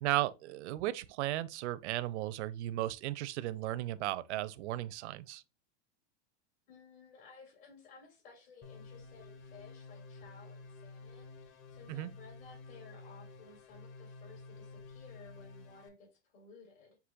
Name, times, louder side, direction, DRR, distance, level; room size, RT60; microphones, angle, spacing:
voice 1, 0.0-5.4 11.9-12.1, right 15 dB, 80° right, 0.5 m, -35 dB
voice 2, 6.7-17.0, left 4 dB, 60° left, 2.5 m, -57 dB
sound 1, 8.6-15.9, left 3 dB, 35° left, 0.8 m, -51 dB
6.0 x 2.8 x 2.4 m
supercardioid pair, 140°, 34 cm